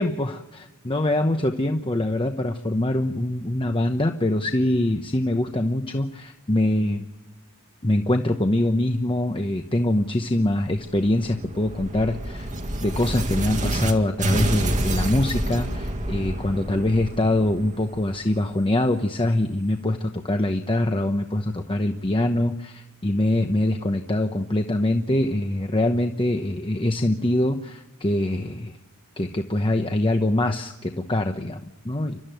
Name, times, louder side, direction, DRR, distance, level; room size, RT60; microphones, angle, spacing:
voice 1, 0.0-7.1 7.8-12.5 12.8-28.7 29.2-32.2, left 1 dB, 25° left, 6 dB, 1.0 m, -24 dB
sound 1, 10.5-13.9 14.2-18.9, right 1 dB, 35° right, 2.0 m, -28 dB
29.5 x 13.0 x 9.2 m, 1.0 s
head